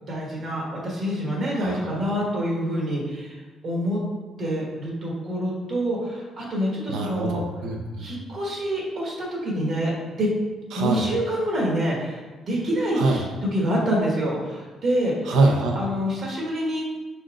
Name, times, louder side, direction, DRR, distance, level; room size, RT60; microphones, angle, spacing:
voice 1, 0.0-4.0 4.4-7.4 8.0-9.9 10.2-10.3 10.7-13.3 13.5-15.3 15.7-16.8, equal, 55° right, -3 dB, 1.4 m, -26 dB
voice 2, 1.6-2.0 6.9-8.0 10.7-11.0 12.9-13.2 15.2-15.8, right 2 dB, 85° right, 1 dB, 0.5 m, -24 dB
4.9 x 4.3 x 2.4 m, 1.3 s
cardioid pair, 125°, 0 cm